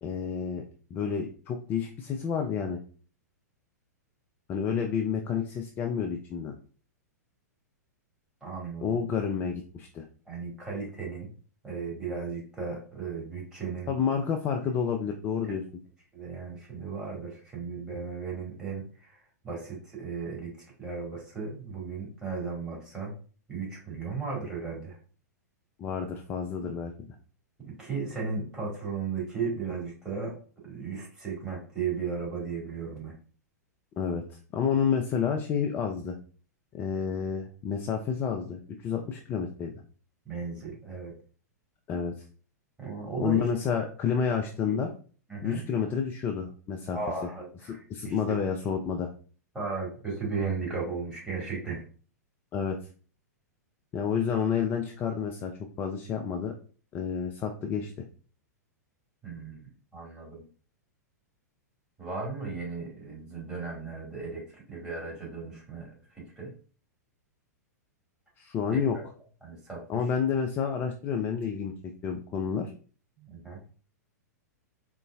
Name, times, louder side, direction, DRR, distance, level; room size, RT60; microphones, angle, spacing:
voice 1, 0.0-0.6 0.9-2.8 4.5-6.5 8.8-10.0 13.9-15.6 25.8-26.9 34.0-36.2 36.7-39.7 41.9-42.2 43.2-44.9 45.4-47.0 47.9-49.1 52.5-52.8 53.9-55.5 55.8-56.5 56.9-57.9 68.4-69.0 69.9-71.7 72.0-72.7, left 7 dB, 20° left, 3 dB, 0.3 m, -29 dB
voice 2, 8.4-9.0 10.3-11.3 11.6-13.9 15.4-15.5 16.1-23.1 23.5-25.0 27.7-30.3 30.6-33.1 40.3-41.1 42.8-43.5 44.1-44.8 45.3-45.6 46.9-47.8 48.0-48.4 49.5-51.8 59.2-60.4 62.0-66.5 68.7-69.1 69.4-70.0 73.2-73.6, right 5 dB, 5° right, -5 dB, 1.8 m, -36 dB
3.8 x 3.0 x 2.4 m, 0.40 s
figure-of-eight pair, 100°, 9 cm